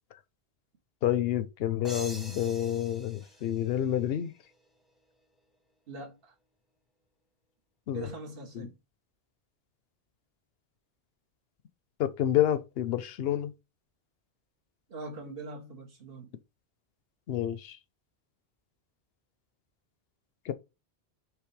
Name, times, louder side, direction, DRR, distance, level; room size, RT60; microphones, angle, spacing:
voice 1, 1.0-4.3 7.9-8.1 8.5-8.7 12.0-13.5 17.3-17.8 20.5-20.6, left 11 dB, 70° left, 0.8 m, -29 dB
sound 1, 1.8-4.5, equal, ahead, 0.7 m, -46 dB
voice 2, 5.9-6.3 7.9-8.8 14.9-16.3, right 2 dB, 60° right, 1.2 m, -42 dB
4.9 x 3.1 x 3.1 m
omnidirectional pair, 1.1 m